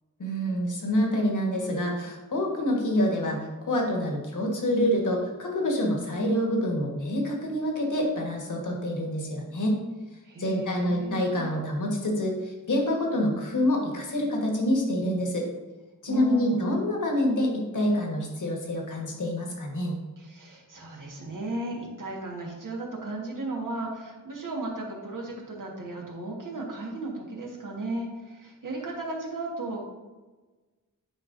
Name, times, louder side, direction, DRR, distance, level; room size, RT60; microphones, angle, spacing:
voice 1, 0.2-9.7 10.4-15.5 16.0-19.9, left 1 dB, 65° left, 0 dB, 1.5 m, -27 dB
voice 2, 10.2-11.5 16.1-16.8 20.2-29.8, right 2 dB, 70° right, -1 dB, 1.5 m, -35 dB
9.6 x 4.4 x 2.6 m, 1.2 s
wide cardioid pair, 105°, 33 cm